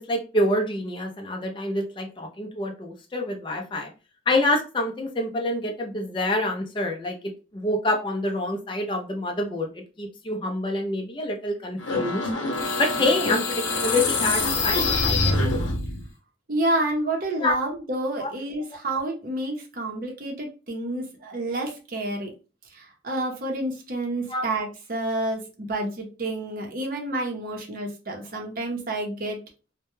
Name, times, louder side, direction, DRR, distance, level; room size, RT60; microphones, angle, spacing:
voice 1, 0.0-3.9 4.3-12.3 12.8-15.4 17.4-17.6 18.2-18.3 24.3-24.4, left 1 dB, 25° left, 3 dB, 0.4 m, -27 dB
sound 1, 11.8-16.1, left 3 dB, 85° left, 0.6 m, -25 dB
voice 2, 16.5-22.3 22.7-29.4, right 1 dB, 50° right, 1 dB, 0.6 m, -29 dB
2.1 x 2.1 x 3.0 m, 0.32 s
head